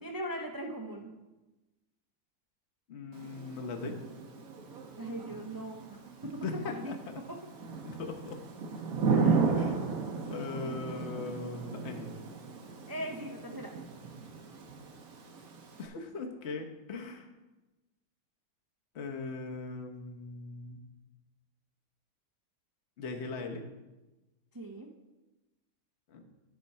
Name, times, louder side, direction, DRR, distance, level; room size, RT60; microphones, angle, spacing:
voice 1, 0.0-1.1 5.0-6.9 7.3-7.4 9.2-9.6 12.9-13.7 24.5-24.9, right 1 dB, 30° right, 1 dB, 0.4 m, -40 dB
voice 2, 2.9-4.0 6.4-7.2 7.8-8.4 9.5-9.8 10.3-12.2 15.8-17.3 18.9-20.8 23.0-23.6 26.1-26.2, left 3 dB, 50° left, 3 dB, 1.2 m, -39 dB
Thunder / Rain, 3.1-15.9, right 5 dB, 70° right, 1.4 m, -35 dB
10.5 x 4.4 x 5.5 m, 1.1 s
omnidirectional pair, 1.6 m